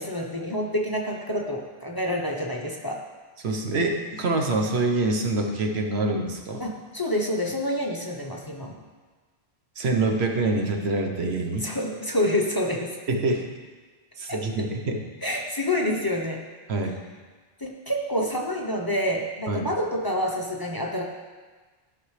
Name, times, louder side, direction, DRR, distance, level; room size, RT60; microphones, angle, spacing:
voice 1, 0.0-3.0 6.6-8.8 11.6-13.0 14.3-14.5 15.2-16.4 17.6-21.0, left 1 dB, 25° left, -1 dB, 0.8 m, -28 dB
voice 2, 3.4-6.6 9.8-11.7 13.1-13.5 14.2-15.0 16.7-17.0 19.5-19.7, right 2 dB, 80° right, 3 dB, 1.2 m, -25 dB
14.0 x 5.9 x 3.3 m, 1.4 s
omnidirectional pair, 1.1 m